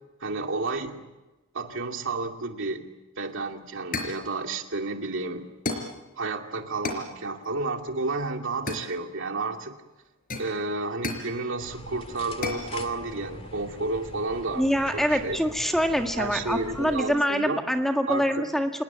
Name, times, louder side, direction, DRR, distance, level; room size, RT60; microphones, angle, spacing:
voice 1, 0.2-1.0 1.5-2.9 3.2-5.5 6.2-9.7 10.4-14.6 14.9-15.4 16.2-17.6 18.1-18.4, right 3 dB, 65° right, 4 dB, 2.4 m, -31 dB
sound 1, 3.2-3.4 3.9-4.3 5.6-6.0 6.8-7.1 8.7-9.3 10.3-11.3 12.4-12.7, left 2 dB, 45° left, 4.4 m, -33 dB
sound 2, 11.6-17.0, left 1 dB, 30° left, 2.2 m, -43 dB
voice 2, 14.6-18.7, equal, ahead, 4 dB, 1.8 m, -25 dB
27.5 x 20.0 x 9.4 m, 1.1 s
head